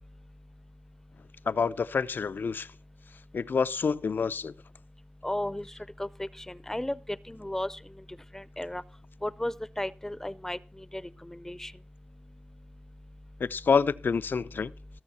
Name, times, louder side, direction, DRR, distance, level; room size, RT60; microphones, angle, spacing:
voice 1, 1.5-2.7 3.3-4.5 13.4-14.7, left 5 dB, 80° left, 0.6 m, -27 dB
voice 2, 5.2-5.6 6.0-6.1 6.5-7.0 7.3-7.7 8.3-8.8 9.2-10.6 10.9-11.0 11.3-11.7, left 1 dB, 15° left, 0.5 m, -33 dB
19.5 x 7.1 x 4.2 m
wide cardioid pair, 95°, 3 cm